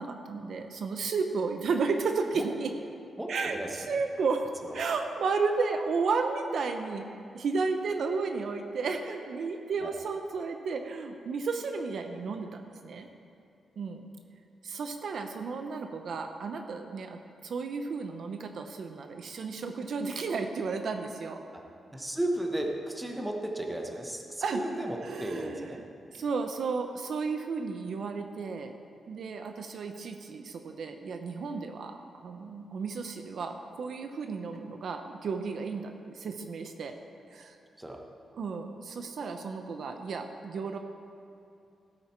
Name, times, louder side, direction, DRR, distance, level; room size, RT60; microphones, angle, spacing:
voice 1, 0.0-2.7 3.3-7.1 7.3-13.1 13.8-14.1 14.6-21.4 24.4-24.6 25.0-25.8 26.1-28.7 29.1-36.9 37.3-37.6 38.4-40.8, right 4 dB, 60° right, 6 dB, 0.7 m, -33 dB
voice 2, 3.2-4.0 4.6-4.8 9.8-9.9 21.9-25.8 37.8-38.0, right 1 dB, 10° right, 2 dB, 1.0 m, -34 dB
16.0 x 8.8 x 4.4 m, 2.6 s
wide cardioid pair, 155°, 0 cm